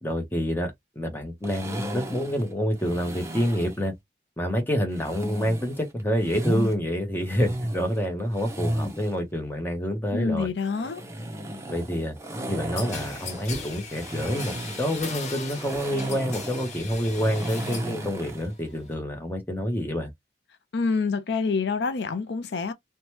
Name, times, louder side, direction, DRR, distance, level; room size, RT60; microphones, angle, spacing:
voice 1, 0.0-3.9 4.4-10.5 11.7-12.1 12.5-20.1, equal, 10° left, 0.8 m, -27 dB
sound 1, 1.4-3.8 4.9-6.7 7.2-9.2 10.6-18.5, equal, 15° right, 0.6 m, -34 dB
voice 2, 10.1-11.0 20.7-22.7, left 4 dB, 75° left, 0.5 m, -27 dB
sound 2, 12.8-18.0 18.3-18.9, left 4 dB, 40° left, 0.8 m, -38 dB
2.9 x 2.2 x 3.0 m
head